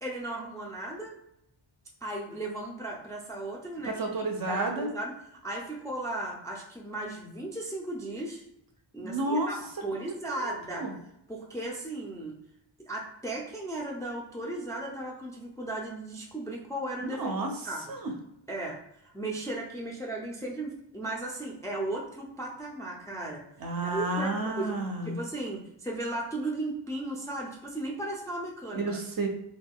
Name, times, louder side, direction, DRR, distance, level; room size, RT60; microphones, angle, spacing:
voice 1, 0.0-1.2 2.0-3.9 4.5-5.1 5.4-8.4 8.9-10.9 11.3-12.4 12.9-17.3 17.6-17.8 18.5-23.4 23.8-24.7 25.0-28.8, right 1 dB, 10° left, -2 dB, 0.3 m, -36 dB
voice 2, 3.8-4.9 9.0-9.5 10.0-11.0 17.0-17.6 17.9-18.1 23.6-25.2 28.7-29.3, right 2 dB, 50° right, 4 dB, 0.5 m, -31 dB
2.4 x 2.2 x 3.5 m, 0.78 s
wide cardioid pair, 150°, 48 cm